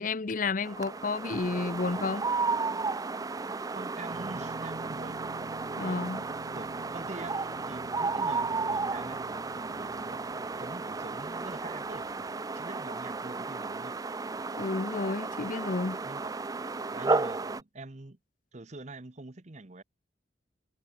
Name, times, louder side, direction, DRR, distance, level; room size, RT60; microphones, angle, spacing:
voice 1, 0.0-2.3 5.8-6.2 14.6-16.0, left 3 dB, 45° left, 0.7 m, -31 dB
sound 1, 0.6-17.6, right 3 dB, 20° right, 0.4 m, -33 dB
voice 2, 3.7-5.2 5.8-6.2 6.5-9.2 9.7-12.1 12.5-14.0 16.0-16.3 16.9-18.2 18.5-19.8, right 2 dB, 40° right, 1.0 m, -45 dB
sound 2, 4.1-11.3, right 1 dB, 65° right, 1.3 m, -49 dB
sound 3, 7.0-12.3, right 2 dB, 90° right, 6.7 m, -60 dB
head